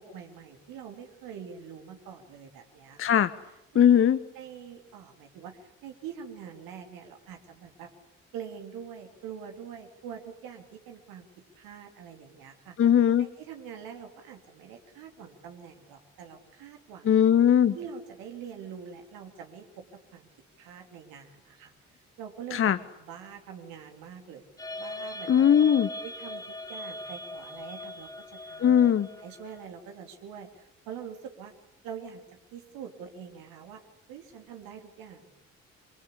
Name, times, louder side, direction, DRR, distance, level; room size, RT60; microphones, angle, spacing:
voice 1, 0.0-3.0 3.7-4.0 4.3-7.9 8.3-11.3 11.6-12.8 13.2-17.2 17.7-19.8 20.1-20.3 20.6-21.7 22.2-22.7 23.0-24.4 24.8-25.6 26.0-28.8 29.1-31.5 31.8-32.2 32.5-33.8 34.1-35.3, right 7 dB, 60° right, 4 dB, 3.4 m, -44 dB
voice 2, 3.0-3.3 3.7-4.2 12.8-13.3 17.1-17.7 22.5-22.8 25.3-25.9 28.6-29.1, left 9 dB, 35° left, 12 dB, 1.0 m, -20 dB
sound 1, 24.6-29.7, left 1 dB, 10° left, 1.2 m, -40 dB
25.5 x 25.0 x 8.4 m, 0.86 s
figure-of-eight pair, 45°, 38 cm